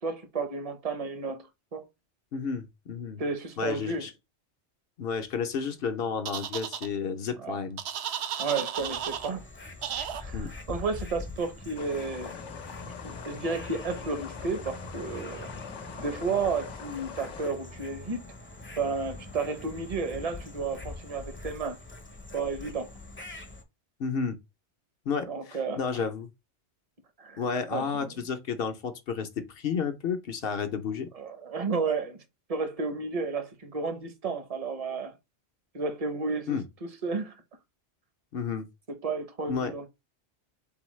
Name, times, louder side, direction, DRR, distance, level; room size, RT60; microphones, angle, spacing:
voice 1, 0.0-1.9 3.2-4.1 7.4-7.6 8.4-9.5 10.1-12.4 12.8-15.5 16.0-18.2 18.8-21.8 22.3-22.9 25.3-26.0 27.2-27.4 27.7-28.1 31.1-32.2 32.5-35.1 35.7-36.6 37.0-37.3 39.0-39.9, right 4 dB, 40° right, 0.7 m, -32 dB
voice 2, 2.3-3.2 3.6-4.1 5.0-7.8 10.3-10.5 24.0-24.4 25.1-26.3 27.4-31.1 36.5-36.6 38.3-38.7 39.5-39.7, left 6 dB, 60° left, 0.8 m, -31 dB
sound 1, 6.3-6.9 7.8-9.3 9.8-10.2, right 9 dB, 70° right, 0.8 m, -34 dB
sound 2, 8.8-23.6, left 2 dB, 15° left, 0.5 m, -43 dB
sound 3, 11.8-17.5, left 8 dB, 90° left, 0.9 m, -43 dB
4.1 x 3.8 x 3.1 m
omnidirectional pair, 1.2 m